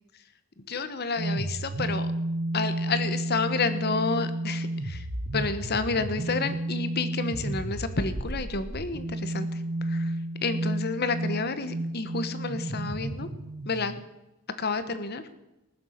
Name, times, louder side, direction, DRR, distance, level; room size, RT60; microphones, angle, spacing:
voice 1, 0.7-2.1 2.5-5.0 5.3-10.1 10.4-13.3 13.6-13.9 14.6-15.2, left 4 dB, 45° left, 11 dB, 1.2 m, -30 dB
sound 1, 1.2-14.0, right 1 dB, 55° right, 1.0 m, -32 dB
19.5 x 7.6 x 6.5 m, 0.96 s
head